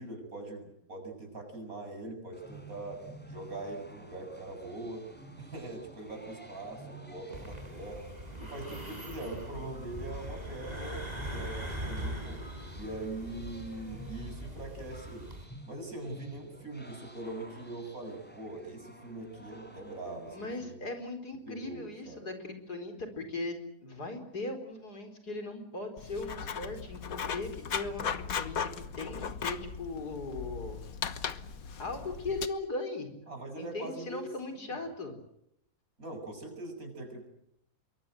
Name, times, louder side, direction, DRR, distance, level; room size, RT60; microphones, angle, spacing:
voice 1, 0.0-3.0 3.3-5.0 5.4-8.0 8.4-12.4 12.7-15.3 15.7-20.9 21.5-22.3 33.3-34.3 34.6-34.8 36.0-37.3, right 2 dB, 60° right, 4 dB, 7.7 m, -42 dB
sound 1, 2.3-20.5, equal, 5° left, 5.2 m, -51 dB
sound 2, 7.3-15.4, equal, 25° right, 5.4 m, -41 dB
voice 2, 20.3-30.8 31.8-35.1, left 2 dB, 75° left, 6 dB, 4.9 m, -39 dB
Writing, 26.0-32.5, left 7 dB, 60° left, 1.6 m, -37 dB
26.5 x 23.5 x 7.8 m, 0.76 s
omnidirectional pair, 1.7 m